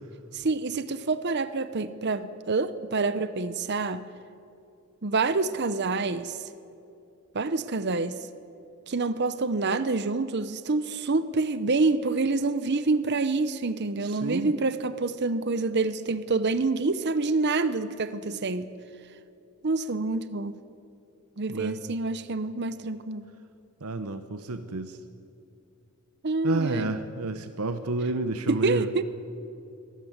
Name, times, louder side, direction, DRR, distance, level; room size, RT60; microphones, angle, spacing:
voice 1, 0.3-4.1 5.0-6.4 7.3-8.3 8.9-18.8 19.6-20.6 21.4-23.2 26.2-27.0 28.5-29.0, right 3 dB, 50° right, 13 dB, 0.7 m, -27 dB
voice 2, 14.0-14.5 21.5-21.8 23.8-25.0 26.4-29.0, right 2 dB, 80° right, 10 dB, 0.9 m, -30 dB
23.5 x 13.5 x 9.5 m, 2.6 s
head